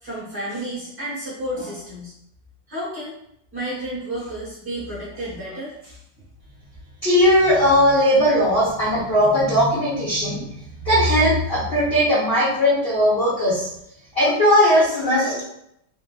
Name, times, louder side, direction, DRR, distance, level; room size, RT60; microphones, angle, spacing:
voice 1, 0.0-2.1 2.7-3.2 3.5-6.0, right 1 dB, 45° right, -8 dB, 1.0 m, -31 dB
voice 2, 7.0-13.7 14.1-15.5, equal, 50° left, -10 dB, 0.7 m, -18 dB
3.5 x 2.5 x 2.2 m, 0.77 s
omnidirectional pair, 1.9 m